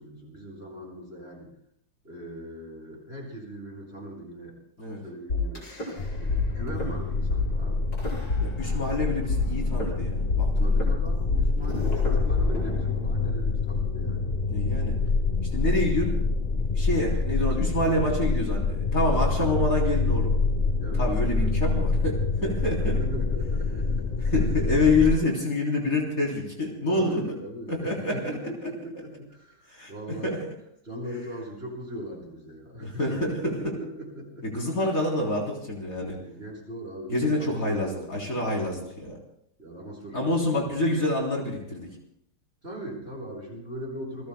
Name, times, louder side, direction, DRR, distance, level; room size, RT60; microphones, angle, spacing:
voice 1, 0.0-1.5 2.0-4.6 4.9-5.7 6.2-7.9 10.5-14.3 19.0-19.4 20.7-21.5 22.6-24.3 25.0-25.2 26.9-30.4 30.8-34.7 36.2-38.5 39.6-40.8 42.6-44.3, equal, 30° right, -3 dB, 8.2 m, -39 dB
sound 1, 5.3-6.4 6.7-6.9 7.3-7.4 7.9-8.9 9.3-13.3, left 4 dB, 65° left, 5.8 m, -30 dB
sound 2, 6.0-25.2, left 3 dB, 85° left, 0.3 m, -26 dB
voice 2, 8.4-10.9 14.5-15.0 15.5-16.2 16.7-20.3 21.0-23.0 24.3-27.2 27.7-28.2 29.7-30.4 32.8-33.6 34.4-36.2 37.1-39.2 40.1-41.9, left 2 dB, 45° left, -2 dB, 3.9 m, -27 dB
28.5 x 20.5 x 2.2 m, 0.72 s
omnidirectional pair, 2.1 m